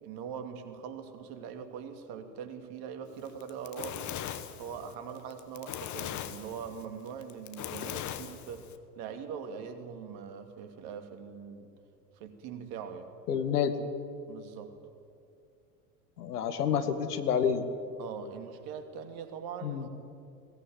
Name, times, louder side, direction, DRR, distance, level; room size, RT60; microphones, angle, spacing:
voice 1, 0.0-4.1 4.6-11.7 12.1-13.1 14.3-14.7 16.7-16.9 18.0-19.9, right 7 dB, 45° right, 7 dB, 2.7 m, -42 dB
Fire, 3.3-8.8, left 10 dB, 35° left, 1.6 m, -39 dB
voice 2, 13.3-13.7 16.2-17.6 19.6-19.9, left 8 dB, 65° left, 9 dB, 2.0 m, -28 dB
21.5 x 18.5 x 9.4 m, 2.4 s
figure-of-eight pair, 80°, 48 cm